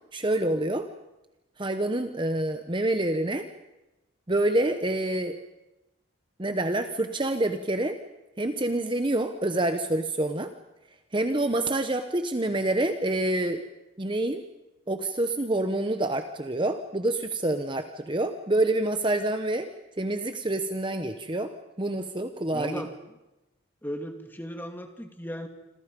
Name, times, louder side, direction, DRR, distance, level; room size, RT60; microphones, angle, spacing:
voice 1, 0.1-0.9 1.6-3.4 4.3-5.4 6.4-8.0 8.4-10.5 11.1-13.6 14.0-14.4 14.9-19.7 20.0-21.5 21.8-22.8, right 1 dB, 25° right, 8 dB, 0.9 m, -27 dB
voice 2, 22.5-22.9 23.8-25.5, equal, 10° left, 5 dB, 2.2 m, -36 dB
27.0 x 27.0 x 5.3 m, 0.97 s
head